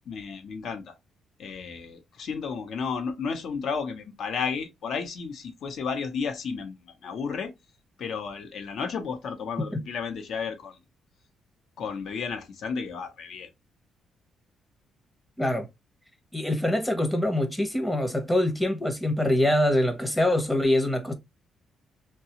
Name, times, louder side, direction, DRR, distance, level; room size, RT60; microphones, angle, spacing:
voice 1, 0.1-0.9 1.4-7.5 8.0-10.8 11.8-13.5, left 5 dB, 65° left, 0.7 m, -33 dB
voice 2, 15.4-15.7 16.3-21.1, left 1 dB, 10° left, 0.7 m, -24 dB
2.7 x 2.3 x 2.8 m
cardioid pair, 90°, 0 cm